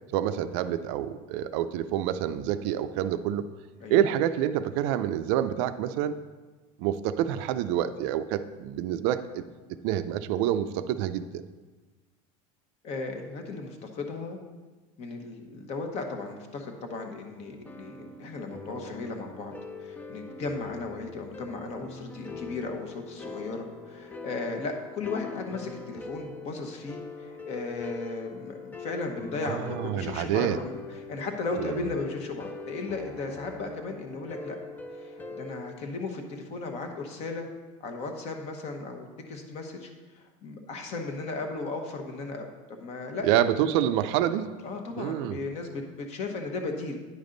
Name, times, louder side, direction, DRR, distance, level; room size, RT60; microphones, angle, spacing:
voice 1, 0.1-3.5 3.9-6.2 6.8-9.4 9.7-11.4 29.5-30.6 31.6-31.8 43.2-44.5 45.0-45.4, right 11 dB, 65° right, 11 dB, 0.4 m, -27 dB
voice 2, 12.8-14.4 15.0-19.5 19.8-34.6 34.9-37.5 37.8-39.9 40.1-43.3 44.6-47.0, left 3 dB, 40° left, 4 dB, 1.0 m, -36 dB
sound 1, 17.4-35.7, left 4 dB, 10° left, 0.3 m, -42 dB
9.8 x 5.3 x 3.9 m, 1.3 s
cardioid pair, 155°, 16 cm